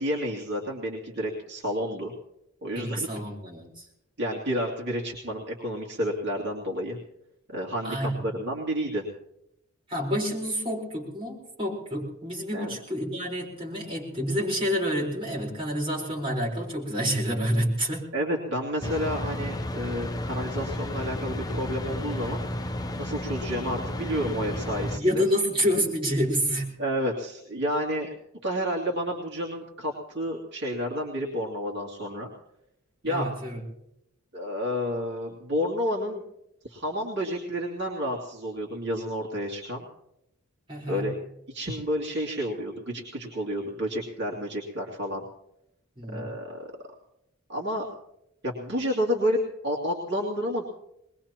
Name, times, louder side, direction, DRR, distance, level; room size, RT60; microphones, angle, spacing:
voice 1, 0.0-2.1 2.6-3.2 4.2-7.0 7.5-9.0 12.5-12.7 18.1-22.4 23.0-25.2 26.8-28.1 28.4-32.3 33.0-33.3 34.3-36.2 36.6-39.9 40.9-41.2 41.5-45.2 46.1-46.7 47.5-47.9 48.4-50.6, equal, 55° right, -2 dB, 2.6 m, -30 dB
voice 2, 2.7-3.8 7.8-8.3 9.9-18.1 25.0-26.8 33.0-33.6 40.7-41.2 46.0-46.3, equal, 25° right, -4 dB, 4.3 m, -28 dB
sound 1, 18.8-25.0, left 1 dB, 20° left, 0.6 m, -32 dB
22.0 x 21.5 x 3.0 m, 0.80 s
head